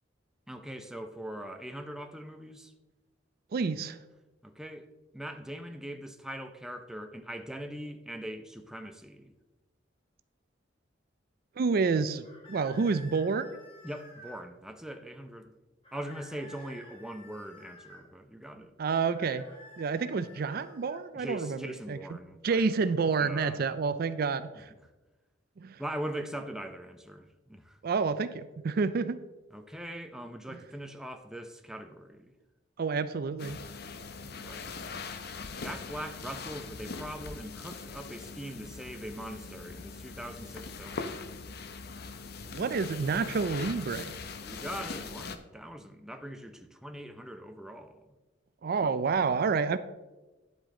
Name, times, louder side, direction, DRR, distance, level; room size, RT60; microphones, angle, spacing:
voice 1, 0.5-2.7 4.4-9.3 13.8-15.5 15.9-18.7 21.1-22.7 23.2-23.6 24.5-24.9 25.8-27.8 29.5-32.3 34.2-34.8 35.5-41.2 44.4-48.1 48.8-48.9, right 1 dB, 5° right, 0.6 m, -41 dB
voice 2, 3.5-4.0 11.6-13.6 18.8-19.4 19.8-21.6 21.9-22.0 22.4-24.7 25.6-25.8 27.8-29.2 32.8-33.6 42.5-44.1 48.6-49.8, right 5 dB, 50° right, 0.4 m, -29 dB
sound 1, 12.2-14.5 15.8-18.0 19.0-21.1, left 1 dB, 30° left, 2.1 m, -52 dB
sound 2, 33.4-45.4, left 4 dB, 55° left, 0.7 m, -41 dB
10.5 x 7.9 x 3.8 m
head